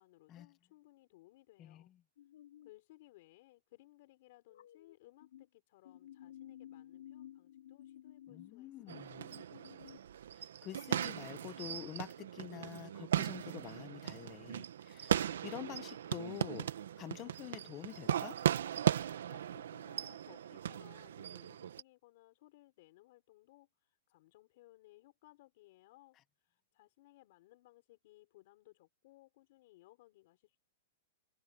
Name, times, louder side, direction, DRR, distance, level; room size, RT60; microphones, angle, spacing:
voice 1, 0.0-1.9 2.6-9.2 19.2-30.6, left 18 dB, 40° left, 4.8 m, -62 dB
voice 2, 1.6-1.9 8.3-9.2 10.3-18.4, left 13 dB, 20° left, 0.9 m, -47 dB
sound 1, 2.2-2.7 4.5-5.5 5.8-10.0, left 11 dB, 60° left, 4.1 m, -54 dB
sound 2, 8.9-21.8, right 10 dB, 70° right, 1.2 m, -37 dB
supercardioid pair, 180°, 0 cm